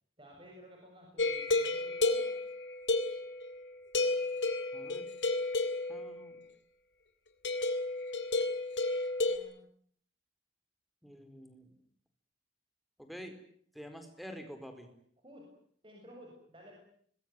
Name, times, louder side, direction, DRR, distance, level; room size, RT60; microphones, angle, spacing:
voice 1, 0.2-2.3 9.2-9.7 15.2-15.5 15.8-16.8, equal, 30° right, 0 dB, 7.4 m, -54 dB
sound 1, 1.2-3.6 3.9-6.2 7.4-9.4, left 2 dB, 80° left, 3.3 m, -32 dB
voice 2, 4.7-5.1 5.9-6.4 11.0-11.7 13.0-13.4 13.7-14.9, equal, ahead, 6 dB, 4.3 m, -47 dB
25.5 x 21.0 x 9.4 m, 0.63 s
head